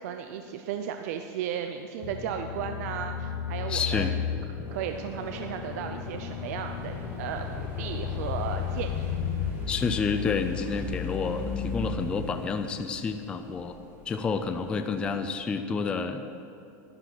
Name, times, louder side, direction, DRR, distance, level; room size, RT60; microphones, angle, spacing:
voice 1, 0.0-4.1 4.7-9.0, right 8 dB, 55° right, 6 dB, 0.6 m, -35 dB
sound 1, 2.0-12.7, left 7 dB, 45° left, 1.0 m, -34 dB
voice 2, 3.7-4.1 9.7-13.8 14.1-16.3, left 5 dB, 10° left, 7 dB, 0.4 m, -29 dB
sound 2, 4.7-15.2, right 1 dB, 20° right, 1.7 m, -46 dB
11.5 x 11.5 x 6.0 m, 2.7 s
supercardioid pair, 180°, 10 cm